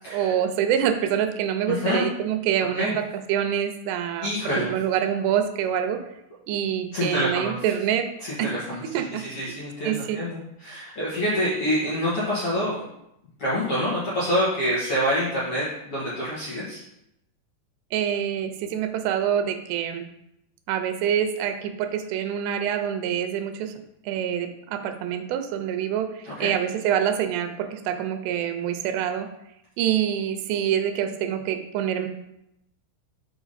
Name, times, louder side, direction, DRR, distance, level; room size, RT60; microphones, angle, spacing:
voice 1, 0.1-3.0 3.3-6.0 6.5-8.1 8.4-8.5 8.8-9.6 9.8-10.2 17.9-20.1 20.7-23.7 24.0-29.3 29.8-32.1, right 9 dB, 85° right, 7 dB, 2.8 m, -26 dB
voice 2, 1.7-2.0 2.7-2.9 4.2-4.7 6.9-7.5 8.2-8.8 9.1-12.8 13.4-16.8 26.4-26.5, equal, 55° left, -9 dB, 1.7 m, -26 dB
6.0 x 5.0 x 4.1 m, 0.81 s
omnidirectional pair, 4.8 m